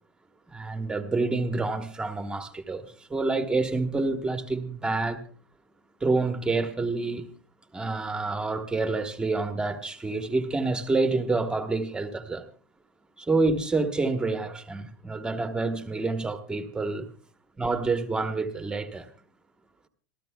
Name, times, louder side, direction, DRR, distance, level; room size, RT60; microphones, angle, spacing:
voice 1, 0.5-5.2 6.0-7.3 7.7-12.5 13.2-17.1 17.6-19.1, right 3 dB, 5° right, 1.1 m, -28 dB
27.0 x 13.5 x 2.2 m
supercardioid pair, 150°, 12 cm